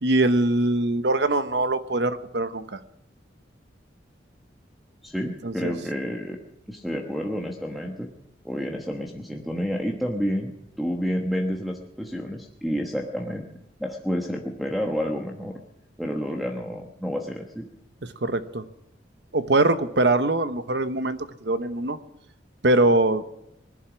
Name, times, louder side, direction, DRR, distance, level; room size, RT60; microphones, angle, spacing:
voice 1, 0.0-2.8 5.4-5.7 18.2-18.6 19.3-22.0 22.6-23.2, right 2 dB, 70° right, 11 dB, 1.0 m, -22 dB
voice 2, 5.0-6.4 6.7-8.1 8.4-10.5 10.8-13.5 13.8-15.6 16.0-17.7, equal, ahead, 1 dB, 1.2 m, -29 dB
20.5 x 11.0 x 6.2 m, 0.87 s
head